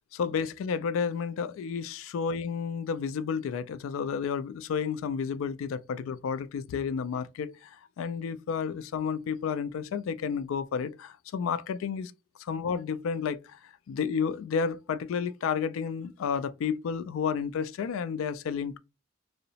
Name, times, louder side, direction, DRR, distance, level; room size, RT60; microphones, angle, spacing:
voice 1, 0.1-12.1 12.4-18.8, left 6 dB, 90° left, 0.3 m, -31 dB
2.8 x 2.0 x 2.7 m
head